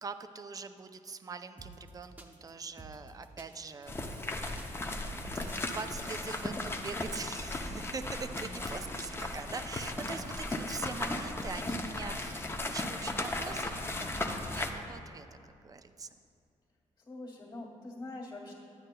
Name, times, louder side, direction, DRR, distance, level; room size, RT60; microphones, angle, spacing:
voice 1, 0.0-4.8 5.1-15.3 15.6-16.1, right 4 dB, 30° right, 9 dB, 0.4 m, -43 dB
sound 1, 1.6-6.6, right 2 dB, 15° right, 0.8 m, -50 dB
sound 2, 3.9-14.7, left 2 dB, 20° left, 0.6 m, -36 dB
voice 2, 8.3-9.0 9.9-10.2 17.0-18.5, left 2 dB, 35° left, -4 dB, 1.6 m, -45 dB
10.5 x 8.8 x 2.2 m, 2.5 s
cardioid pair, 95°, 12 cm